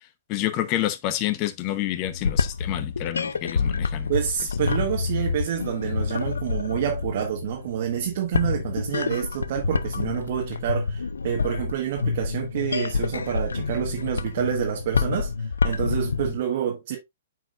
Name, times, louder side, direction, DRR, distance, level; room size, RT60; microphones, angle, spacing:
voice 1, 0.3-4.1, left 13 dB, 35° left, 0.9 m, -28 dB
sound 1, 2.0-16.4, left 5 dB, 85° left, 0.5 m, -28 dB
voice 2, 4.1-17.0, right 9 dB, 55° right, 1.4 m, -28 dB
9.2 x 4.7 x 2.4 m
hypercardioid pair, 120°, 0 cm